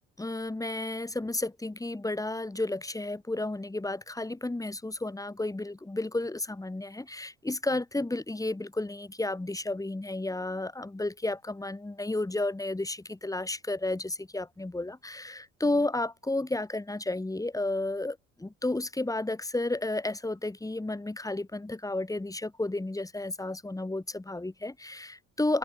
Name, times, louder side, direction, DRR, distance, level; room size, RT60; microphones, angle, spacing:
voice 1, 0.2-25.6, left 2 dB, 10° left, 2.4 m, -32 dB
cardioid pair, 85°, 30 cm